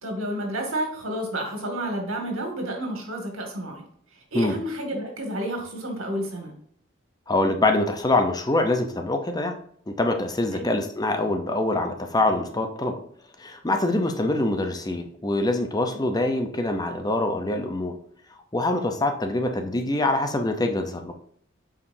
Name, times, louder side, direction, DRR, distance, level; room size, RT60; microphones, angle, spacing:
voice 1, 0.0-3.8 4.3-6.5 10.5-10.8 15.9-16.0, right 1 dB, 85° right, 2 dB, 2.2 m, -30 dB
voice 2, 7.3-9.6 9.9-13.0 13.4-17.9 18.5-21.1, left 2 dB, 20° left, 5 dB, 0.7 m, -24 dB
8.4 x 5.0 x 2.7 m, 0.65 s
head